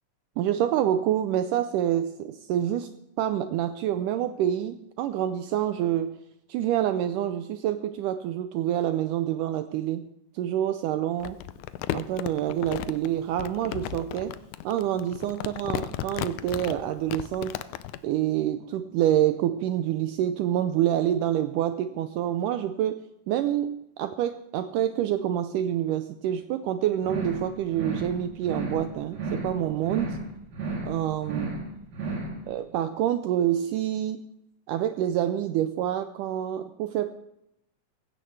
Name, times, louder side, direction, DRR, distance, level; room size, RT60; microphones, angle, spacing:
voice 1, 0.4-2.9 3.2-6.2 6.5-10.1 10.4-11.4 11.9-14.4 14.6-17.6 18.0-30.2 30.8-31.6 32.5-34.3 34.7-37.1, right 11 dB, 80° right, 10 dB, 2.0 m, -27 dB
Crumpling crinkling, 11.2-18.0, left 13 dB, 85° left, 1.7 m, -34 dB
sound 1, 27.0-27.5 27.7-28.1 28.4-28.9 29.1-29.6 29.8-30.3 30.5-30.9 31.2-31.7 31.9-32.3, right 3 dB, 55° right, 4.3 m, -32 dB
17.5 x 16.0 x 3.3 m, 0.82 s
omnidirectional pair, 4.0 m